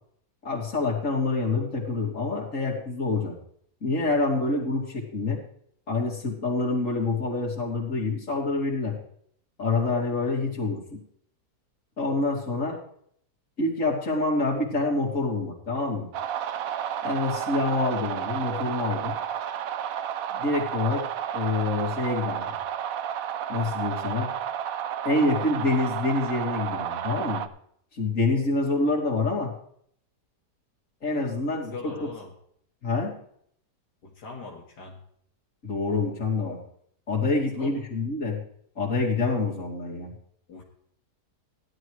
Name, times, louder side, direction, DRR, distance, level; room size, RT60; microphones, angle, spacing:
voice 1, 0.4-3.4 3.8-5.4 5.9-9.0 9.6-11.0 12.0-12.8 13.6-16.1 17.0-19.2 20.3-21.0 21.3-22.6 23.5-24.3 25.0-27.4 27.9-29.5 31.0-31.9 32.8-33.2 35.6-36.6 37.1-38.4 38.8-40.1, left 3 dB, 50° left, -3 dB, 3.1 m, -26 dB
sound 1, 16.1-27.5, right 9 dB, 65° right, 1.0 m, -31 dB
voice 2, 31.7-32.3 34.0-35.0 37.6-37.8 40.5-40.6, left 4 dB, 80° left, -1 dB, 2.1 m, -40 dB
16.5 x 11.0 x 3.2 m, 0.66 s
omnidirectional pair, 1.8 m